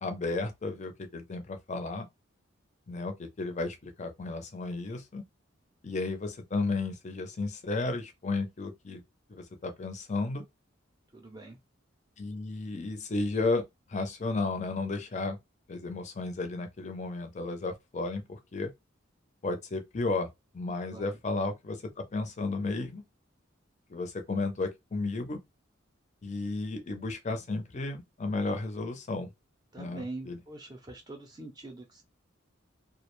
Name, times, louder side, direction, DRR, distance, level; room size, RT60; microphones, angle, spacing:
voice 1, 0.0-2.1 2.9-5.2 5.8-9.0 9.3-10.4 12.2-13.6 13.9-15.4 15.7-18.7 19.4-20.3 20.5-23.0 23.9-25.4 26.2-29.3 29.8-30.4, left 3 dB, 35° left, 0.5 m, -33 dB
voice 2, 11.1-11.6 20.9-21.2 29.7-32.0, right 2 dB, 20° right, 0.5 m, -43 dB
2.3 x 2.0 x 3.0 m
head